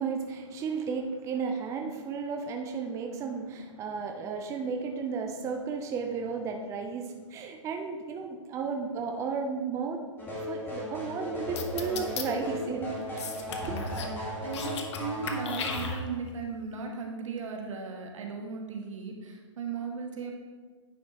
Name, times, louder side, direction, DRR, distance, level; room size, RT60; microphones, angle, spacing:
voice 1, 0.0-10.0 10.5-13.3 13.7-13.8, right 5 dB, 20° right, 4 dB, 0.5 m, -34 dB
sound 1, 10.2-15.9, left 1 dB, 10° left, 1.7 m, -36 dB
sound 2, 11.6-12.2 13.2-14.1 14.4-15.0 15.3-16.3, left 7 dB, 60° left, 0.9 m, -36 dB
voice 2, 13.6-20.3, right 5 dB, 75° right, 2 dB, 1.4 m, -37 dB
9.7 x 5.4 x 2.9 m, 1.4 s
hypercardioid pair, 130°, 16 cm